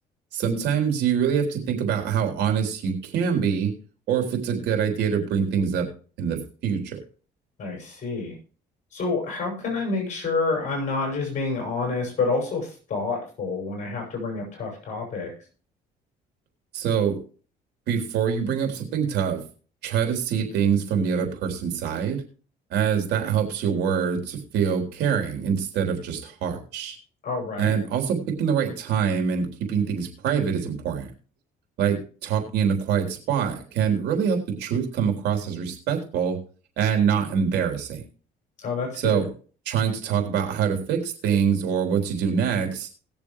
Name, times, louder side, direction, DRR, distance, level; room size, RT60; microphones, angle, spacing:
voice 1, 0.3-3.7 4.1-5.9 6.2-7.0 16.7-17.2 17.9-19.4 19.8-22.2 22.7-27.0 27.6-31.1 31.8-36.4 36.8-38.0 39.0-39.3 39.7-42.9, right 7 dB, 80° right, 4 dB, 3.6 m, -24 dB
voice 2, 7.6-8.4 8.9-15.3 27.2-27.8 38.6-39.2, left 3 dB, 45° left, 1 dB, 6.7 m, -28 dB
20.0 x 7.2 x 3.2 m, 0.38 s
cardioid pair, 110°, 17 cm